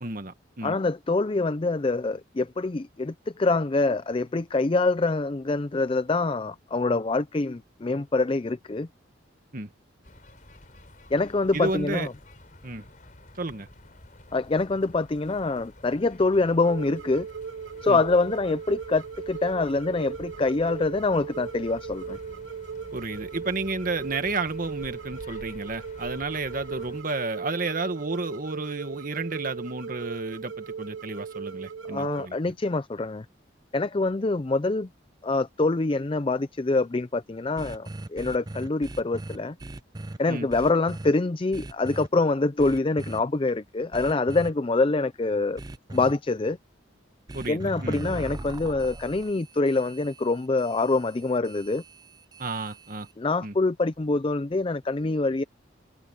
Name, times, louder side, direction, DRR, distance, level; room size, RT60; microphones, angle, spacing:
voice 1, 0.0-0.7 9.5-9.7 11.5-12.1 12.6-12.8 13.4-13.7 17.9-18.0 22.9-32.5 40.3-40.5 47.3-48.0 52.4-53.1 53.4-53.5, right 3 dB, 45° right, 1.7 m, -32 dB
voice 2, 0.6-8.9 11.1-12.1 14.3-17.3 17.8-22.2 31.9-33.2 33.7-34.9 35.2-39.6 40.2-45.6 45.9-46.6 47.5-51.8 53.2-55.4, left 3 dB, 30° left, 0.5 m, -25 dB
sound 1, 10.0-27.0, left 1 dB, 45° left, 5.0 m, -49 dB
sound 2, 16.6-32.3, right 6 dB, 85° right, 1.3 m, -38 dB
sound 3, 37.6-40.2 40.5-41.1 41.5-42.1 42.6-43.2 43.9-44.5 45.6-46.1 47.3-53.1, right 2 dB, 20° right, 0.6 m, -39 dB
head